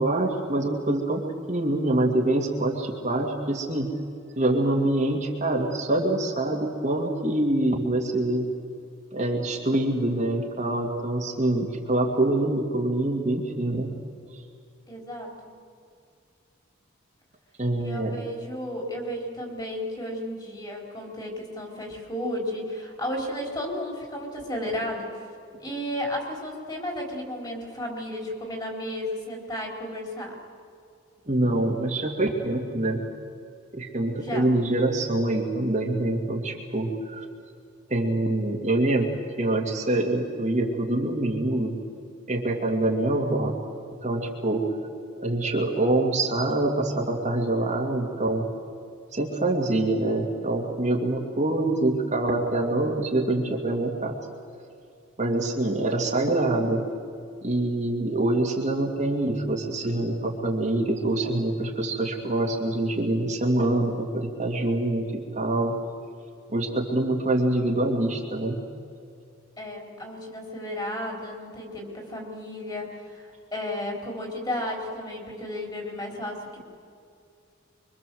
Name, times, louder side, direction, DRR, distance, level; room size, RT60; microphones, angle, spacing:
voice 1, 0.0-3.9 4.4-8.5 9.1-13.9 14.3-14.4 17.6-18.2 31.3-33.0 33.7-37.3 37.9-39.1 39.4-41.8 42.3-43.5 44.0-44.7 45.2-48.5 49.1-54.2 55.2-56.9 57.4-65.8 66.5-68.6, right 2 dB, 35° right, -1 dB, 2.3 m, -25 dB
voice 2, 14.9-15.5 17.8-25.2 25.6-30.4 34.2-34.5 69.6-76.6, left 1 dB, 20° left, 1 dB, 4.4 m, -33 dB
25.0 x 24.5 x 7.8 m, 2.4 s
head